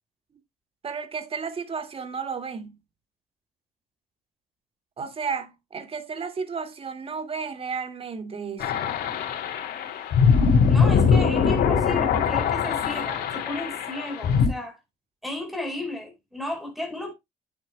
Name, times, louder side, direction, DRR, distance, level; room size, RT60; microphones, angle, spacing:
voice 1, 0.8-2.8 5.0-8.9, right 5 dB, 35° right, 2.0 m, -33 dB
sound 1, 8.6-14.5, left 6 dB, 70° left, 3.1 m, -22 dB
voice 2, 10.7-14.8 15.2-17.1, left 1 dB, ahead, 4.8 m, -33 dB
10.5 x 9.0 x 2.2 m
cardioid pair, 110°, 17 cm